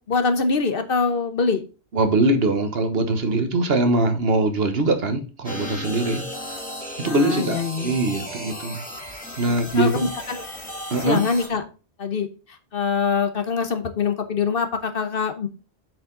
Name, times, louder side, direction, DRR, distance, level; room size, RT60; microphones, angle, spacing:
voice 1, 0.1-1.6 7.0-7.9 9.8-10.4 11.0-11.6 12.0-15.5, left 5 dB, 55° left, 8 dB, 1.1 m, -24 dB
voice 2, 1.9-6.2 7.0-8.8 9.4-10.1 10.9-11.2, right 2 dB, 65° right, 7 dB, 1.3 m, -22 dB
sound 1, 5.4-11.5, left 1 dB, 5° left, 2.1 m, -35 dB
7.7 x 4.9 x 3.8 m, 0.33 s
omnidirectional pair, 1.1 m